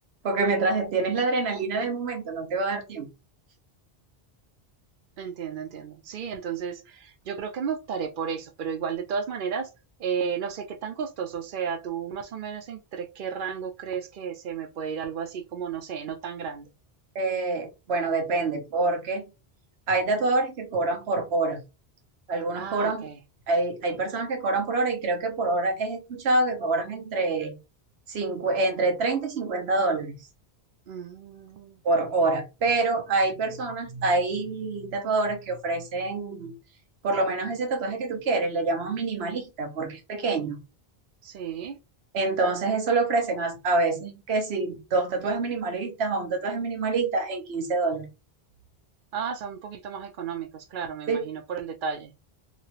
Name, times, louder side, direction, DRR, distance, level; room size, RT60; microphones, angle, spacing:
voice 1, 0.2-3.1 17.1-19.2 19.9-21.6 22.3-23.0 23.5-27.6 28.1-30.2 31.8-36.5 37.0-40.6 42.1-48.1 51.1-51.2, right 3 dB, 85° right, 1.0 m, -26 dB
voice 2, 5.2-9.7 10.0-16.7 22.6-23.2 30.9-31.8 41.2-41.8 49.1-52.1, right 7 dB, 60° right, 0.7 m, -33 dB
2.9 x 2.9 x 2.8 m
omnidirectional pair, 1.0 m